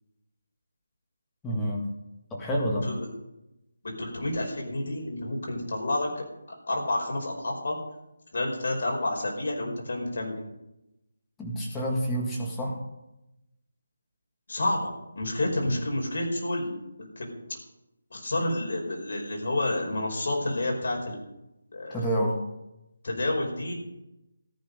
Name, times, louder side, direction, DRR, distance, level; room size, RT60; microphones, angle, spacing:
voice 1, 1.4-1.9 2.3-2.9 11.4-12.8 21.9-22.4, equal, 5° left, -4 dB, 1.8 m, -28 dB
voice 2, 3.8-6.2 6.7-7.8 8.3-10.4 14.5-16.9 17.2-17.4 18.1-21.2 21.7-22.1 23.0-23.7, left 1 dB, 50° left, 0 dB, 5.1 m, -29 dB
14.0 x 12.5 x 5.4 m, 0.92 s
figure-of-eight pair, 175°, 0 cm